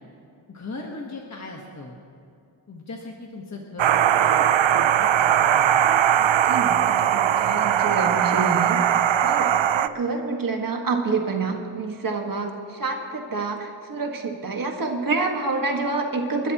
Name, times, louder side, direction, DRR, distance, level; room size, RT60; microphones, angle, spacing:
voice 1, 0.5-2.0 2.7-5.8, left 2 dB, 35° left, 0 dB, 1.3 m, -38 dB
sound 1, 3.8-9.9, right 10 dB, 80° right, 0.6 m, -20 dB
voice 2, 6.2-16.5, right 3 dB, 45° right, 2 dB, 1.7 m, -28 dB
29.0 x 13.0 x 3.0 m, 2.5 s
wide cardioid pair, 175°, 45 cm